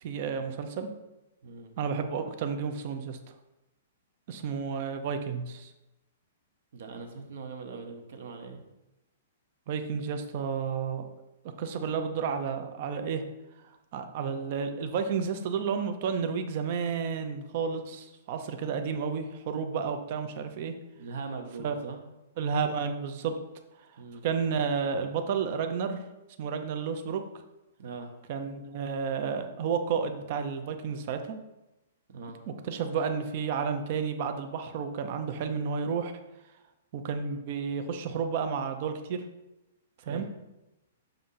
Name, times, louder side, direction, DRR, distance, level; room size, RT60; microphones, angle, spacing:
voice 1, 0.0-0.9 1.8-3.2 4.3-5.7 9.7-11.0 11.6-13.2 13.9-20.7 21.6-21.8 22.4-23.3 24.2-26.0 26.4-27.2 28.3-31.4 32.6-36.1 36.9-39.2 40.1-40.2, right 6 dB, 35° right, 7 dB, 0.5 m, -31 dB
voice 2, 1.4-1.7 6.7-8.6 20.9-22.0 24.0-24.2 27.8-28.1 32.1-32.4 40.0-40.3, right 4 dB, 55° right, 4 dB, 0.9 m, -41 dB
6.9 x 2.6 x 5.5 m, 0.97 s
hypercardioid pair, 175°, 0 cm